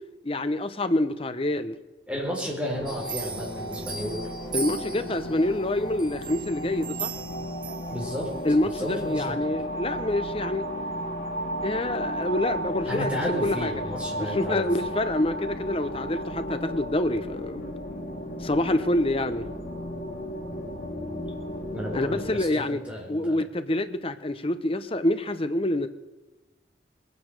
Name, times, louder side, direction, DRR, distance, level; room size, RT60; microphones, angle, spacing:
voice 1, 0.2-1.7 4.5-7.1 8.4-10.7 11.6-13.7 14.2-17.6 18.4-19.5 21.9-22.8 23.1-25.9, left 1 dB, 30° left, 10 dB, 0.9 m, -27 dB
voice 2, 2.1-4.2 7.9-8.3 8.6-9.4 12.8-14.9 21.7-23.4, equal, 5° right, -2 dB, 4.3 m, -33 dB
sound 1, 2.7-22.4, equal, 50° left, 3.3 m, -34 dB
sound 2, 2.9-5.4 6.0-8.3 8.8-9.0, right 6 dB, 25° right, 2.2 m, -38 dB
21.0 x 9.4 x 6.6 m, 1.2 s
head